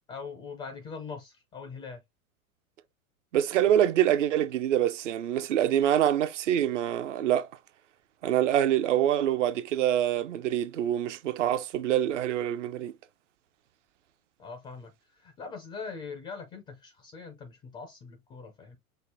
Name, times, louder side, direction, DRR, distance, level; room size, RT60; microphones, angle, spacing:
voice 1, 0.1-2.0 3.7-3.8 14.4-18.8, left 5 dB, 10° left, 0.3 m, -42 dB
voice 2, 3.3-7.5 8.2-12.9, right 11 dB, 55° right, 0.6 m, -25 dB
5.5 x 2.0 x 3.2 m
figure-of-eight pair, 100°, 44 cm